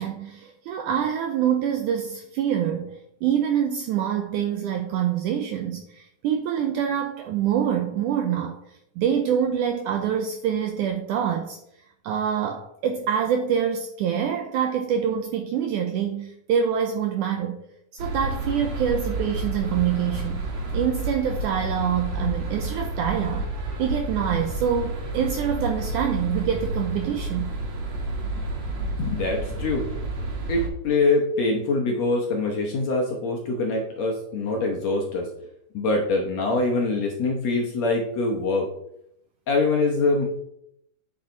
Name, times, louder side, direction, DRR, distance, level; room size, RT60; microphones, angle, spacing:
voice 1, 0.0-8.6 9.0-11.6 12.0-17.6 17.9-20.4 20.7-23.5 23.8-27.5, right 8 dB, 85° right, 5 dB, 1.8 m, -25 dB
sound 1, 18.0-30.7, right 2 dB, 55° right, 2.6 m, -30 dB
voice 2, 28.8-29.9 30.5-35.3 35.7-38.7 39.5-40.3, left 3 dB, 65° left, 0 dB, 1.7 m, -24 dB
9.7 x 5.7 x 3.9 m, 0.76 s
omnidirectional pair, 4.2 m